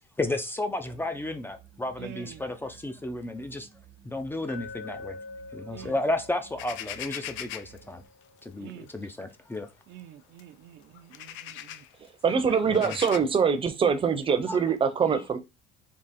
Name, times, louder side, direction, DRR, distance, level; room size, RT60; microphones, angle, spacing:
voice 1, 0.2-3.7 4.0-5.2 5.5-8.0 8.4-9.7 12.7-12.9 14.5-14.6, left 2 dB, 10° left, 0.4 m, -32 dB
sound 1, 0.8-8.1, right 10 dB, 90° right, 1.0 m, -55 dB
voice 2, 2.0-2.4 5.7-6.0 8.6-8.9 9.9-11.9 12.3-12.6, right 13 dB, 65° right, 0.5 m, -46 dB
Glass, 4.5-8.6, left 3 dB, 40° left, 0.8 m, -45 dB
sound 2, 6.6-7.8 8.9-9.1 9.5-9.6 10.4-10.5 10.9-11.9 12.6-13.2, left 11 dB, 75° left, 0.5 m, -39 dB
voice 3, 12.0-15.4, right 6 dB, 25° right, 0.7 m, -24 dB
3.7 x 2.9 x 4.2 m
cardioid pair, 145°, 20 cm